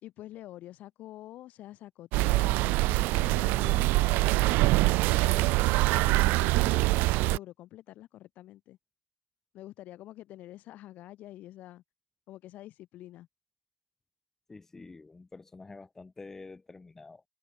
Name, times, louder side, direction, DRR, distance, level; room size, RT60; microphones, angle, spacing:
voice 1, 0.0-6.9 7.2-8.8 9.5-11.8 12.3-13.3, left 14 dB, 45° left, 3.3 m, -47 dB
sound 1, 2.1-7.4, right 22 dB, 60° right, 0.5 m, -24 dB
voice 2, 14.5-17.2, left 3 dB, 10° left, 1.9 m, -48 dB
cardioid pair, 170°, 4 cm